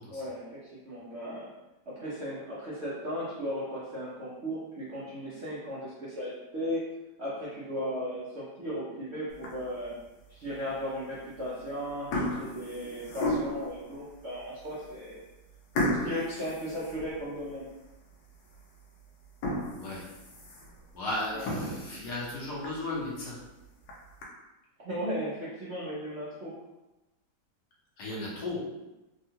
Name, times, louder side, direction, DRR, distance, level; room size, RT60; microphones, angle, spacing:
voice 1, 0.1-1.5 1.9-6.8 7.2-9.9 10.3-15.2 16.0-17.6 21.3-21.6 24.8-26.5, equal, 55° right, -9 dB, 0.7 m, -36 dB
sound 1, 9.3-9.8 10.4-10.5 11.4-11.6 11.9-13.8 14.4-14.5 14.8-15.0 15.8-17.5 17.9-18.0 18.5-18.6 19.2-20.8 21.3-21.4 21.8-21.9 22.2-22.3 22.6-22.7 23.6-24.2, left 1 dB, 85° left, 1.3 m, -33 dB
voice 2, 20.9-23.4 28.0-28.6, left 2 dB, 65° left, -5 dB, 1.3 m, -34 dB
3.6 x 2.2 x 2.8 m, 1.0 s
omnidirectional pair, 1.9 m